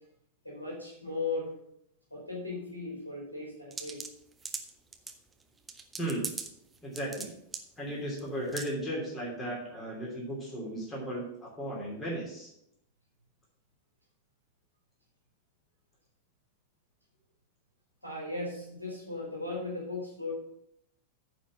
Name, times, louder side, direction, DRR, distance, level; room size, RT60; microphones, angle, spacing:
voice 1, 0.4-1.5 2.1-4.0 18.0-20.3, left 3 dB, 80° left, -3 dB, 2.5 m, -37 dB
sound 1, 3.7-5.1 5.7-6.5 6.7-7.3 7.5-7.6 8.2-8.3 8.5-8.7, right 4 dB, 15° right, 0.9 m, -38 dB
voice 2, 6.0-6.3 6.8-7.3 7.8-12.5, right 1 dB, 20° left, -2 dB, 2.8 m, -35 dB
9.6 x 4.5 x 6.9 m, 0.75 s
figure-of-eight pair, 90°, 0 cm